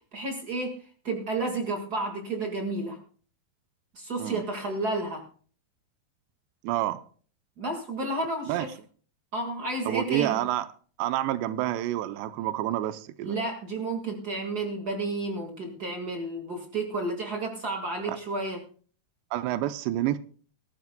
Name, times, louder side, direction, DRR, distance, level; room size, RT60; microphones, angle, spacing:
voice 1, 0.1-0.8 1.0-3.0 3.9-5.2 7.6-8.7 9.3-10.4 13.2-18.6, right 2 dB, 55° right, 3 dB, 1.1 m, -31 dB
voice 2, 6.6-7.0 8.5-8.7 9.9-10.7 11.0-13.4 18.1-18.2 19.3-20.2, right 14 dB, 90° right, 12 dB, 2.9 m, -28 dB
20.5 x 14.0 x 2.2 m, 0.43 s
omnidirectional pair, 4.8 m